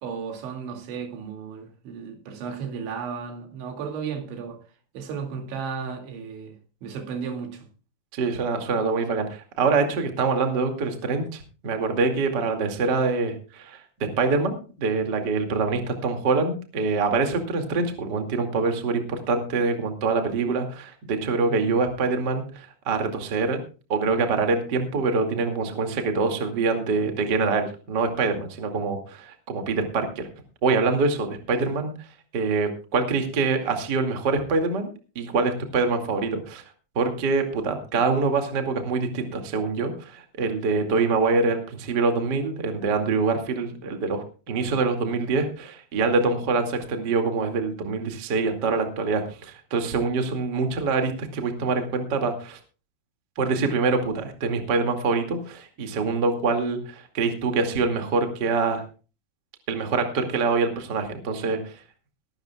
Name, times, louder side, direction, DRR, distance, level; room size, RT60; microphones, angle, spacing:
voice 1, 0.0-4.6 4.9-6.6 6.8-7.7 21.5-21.7 31.6-31.7, right 6 dB, 75° right, 4.7 m, -34 dB
voice 2, 8.1-23.6 23.9-30.3 30.6-31.9 32.3-34.9 35.2-36.6 37.0-52.6 53.4-58.8 59.7-61.8, right 4 dB, 35° right, 1.7 m, -25 dB
21.5 x 12.5 x 2.3 m
omnidirectional pair, 5.4 m